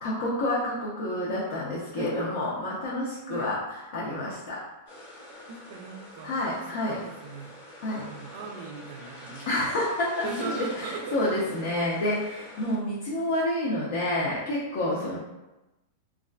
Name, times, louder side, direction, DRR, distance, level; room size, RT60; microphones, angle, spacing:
voice 1, 0.0-3.6 3.9-4.6 6.2-7.0 7.8-8.0 9.5-15.2, left 1 dB, 60° left, -6 dB, 0.6 m, -29 dB
sound 1, 4.9-12.8, left 1 dB, 80° left, 0.9 m, -45 dB
voice 2, 5.5-6.4 6.8-7.6 8.0-9.7 10.2-11.6 14.9-15.1, right 3 dB, 60° right, 3 dB, 0.3 m, -39 dB
2.3 x 2.3 x 2.2 m, 1.0 s
supercardioid pair, 160°, 0 cm